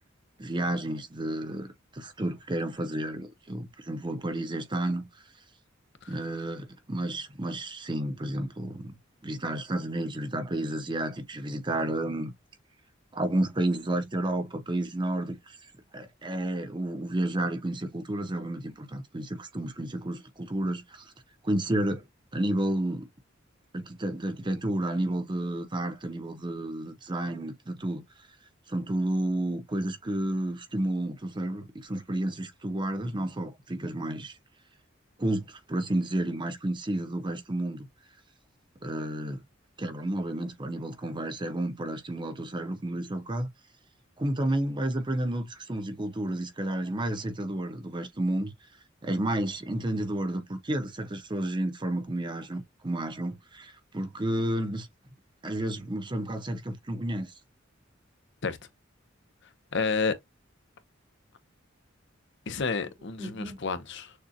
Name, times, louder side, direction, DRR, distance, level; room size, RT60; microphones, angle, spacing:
voice 1, 0.4-5.1 6.1-9.0 9.2-12.3 13.1-15.6 15.9-21.1 21.4-22.0 22.3-23.1 23.7-28.0 28.7-34.4 35.2-37.9 38.8-39.4 39.8-43.5 44.2-48.5 49.0-54.9 55.4-57.3 63.2-63.6, right 1 dB, 25° right, 0.8 m, -31 dB
voice 2, 59.7-60.2 62.5-64.1, left 4 dB, 65° left, 0.8 m, -30 dB
6.6 x 2.4 x 2.7 m
head